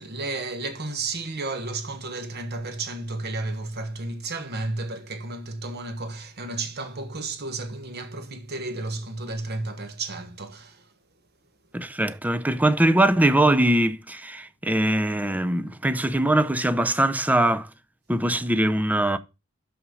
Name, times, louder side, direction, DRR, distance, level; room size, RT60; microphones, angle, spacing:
voice 1, 0.0-10.9, right 2 dB, 50° right, 1.3 m, -32 dB
voice 2, 11.7-17.7 18.1-19.2, right 1 dB, 5° right, 0.5 m, -22 dB
6.3 x 5.9 x 5.3 m
head